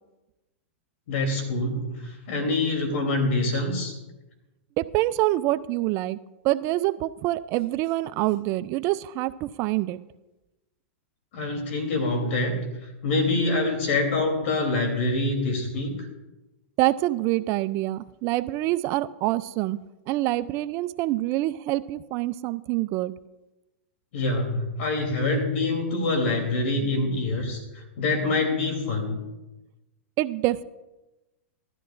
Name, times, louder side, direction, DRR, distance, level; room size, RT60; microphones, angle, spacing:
voice 1, 1.1-3.9 11.3-12.7 13.0-15.9 24.1-29.2, left 2 dB, 65° left, 3 dB, 3.2 m, -25 dB
voice 2, 4.8-6.2 6.4-10.0 16.8-19.8 20.1-23.1 30.2-30.6, right 17 dB, 40° right, 15 dB, 0.4 m, -26 dB
16.5 x 12.5 x 2.5 m, 1.0 s
hypercardioid pair, 125°, 7 cm